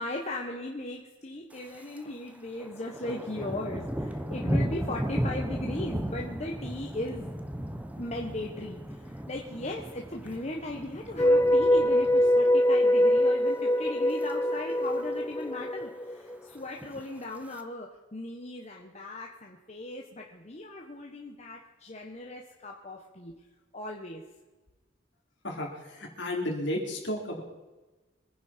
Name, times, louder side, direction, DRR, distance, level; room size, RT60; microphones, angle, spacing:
voice 1, 0.0-7.7 8.0-23.3 23.7-24.2, left 2 dB, 35° left, 0 dB, 1.4 m, -38 dB
Thunder, 1.5-2.0 2.3-12.7 13.1-13.4 13.9-14.3 14.6-14.7 14.8-14.9 15.3-15.9 16.7-17.6, equal, 10° right, 0.9 m, -35 dB
sound 1, 11.2-16.4, left 1 dB, 15° left, 0.4 m, -23 dB
voice 2, 26.0-27.4, left 1 dB, 65° left, 0 dB, 4.0 m, -32 dB
25.0 x 10.0 x 4.6 m, 1.2 s
head